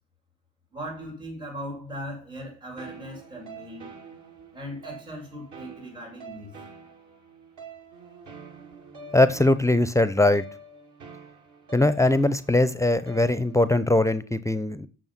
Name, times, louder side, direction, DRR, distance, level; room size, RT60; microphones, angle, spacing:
voice 1, 0.7-3.9 4.5-6.5, equal, 85° right, 5.9 m, -38 dB
sound 1, 2.8-13.7, right 3 dB, 55° right, 2.2 m, -46 dB
voice 2, 9.1-10.4 11.7-14.9, left 2 dB, 10° left, 0.7 m, -21 dB
8.9 x 6.9 x 6.0 m
figure-of-eight pair, 45°, 35 cm